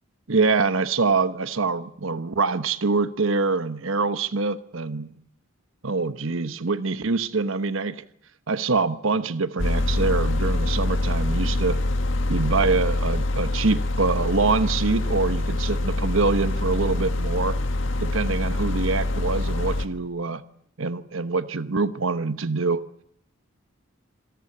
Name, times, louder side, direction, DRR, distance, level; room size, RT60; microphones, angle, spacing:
voice 1, 0.3-5.1 5.8-8.0 8.5-11.8 12.3-17.6 18.0-20.4 20.8-22.8, right 4 dB, 75° right, 12 dB, 1.1 m, -25 dB
sound 1, 9.6-19.8, left 2 dB, 65° left, 1.7 m, -25 dB
27.0 x 18.0 x 8.6 m, 0.69 s
head